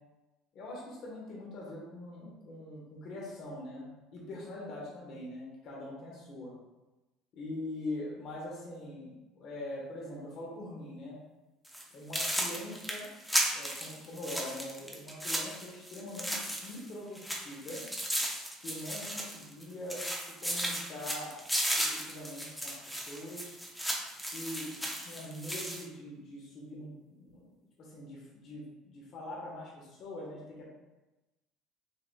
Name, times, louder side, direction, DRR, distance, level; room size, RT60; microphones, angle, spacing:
voice 1, 0.5-6.5 7.3-11.2 11.9-13.1 13.5-17.9 18.6-21.4 21.7-23.6 24.2-30.7, left 1 dB, 50° left, -4 dB, 1.2 m, -43 dB
sound 1, 11.6-11.8 12.1-16.9 17.1-19.6 19.9-25.8, equal, ahead, 0.7 m, -35 dB
6.6 x 2.6 x 2.3 m, 1.1 s
cardioid pair, 125°, 0 cm